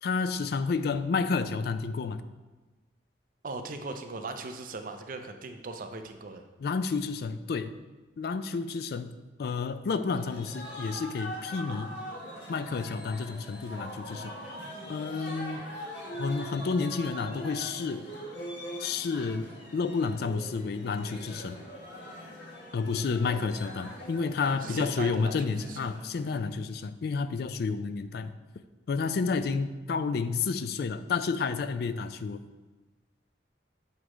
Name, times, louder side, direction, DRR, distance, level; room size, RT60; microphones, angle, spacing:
voice 1, 0.0-2.3 6.6-7.7 8.2-11.9 12.5-14.3 14.9-15.6 16.2-18.1 18.8-21.6 22.7-28.4 28.9-32.4, left 4 dB, 60° left, 12 dB, 0.3 m, -30 dB
voice 2, 3.4-6.4 23.3-23.6 24.5-25.9, right 3 dB, 50° right, 6 dB, 0.5 m, -39 dB
sound 1, 10.1-26.5, equal, 85° left, 1.4 m, -42 dB
8.1 x 3.1 x 4.9 m, 1.2 s
head